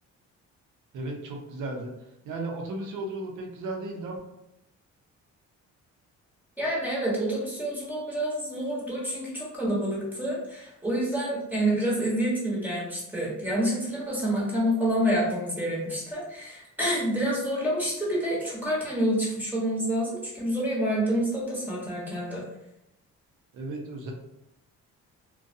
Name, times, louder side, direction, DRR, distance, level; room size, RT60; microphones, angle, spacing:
voice 1, 0.9-4.2 23.5-24.1, right 2 dB, 80° right, 1 dB, 0.7 m, -35 dB
voice 2, 6.6-22.4, right 1 dB, 5° right, -6 dB, 1.1 m, -28 dB
2.3 x 2.2 x 2.6 m, 0.83 s
cardioid pair, 90°, 30 cm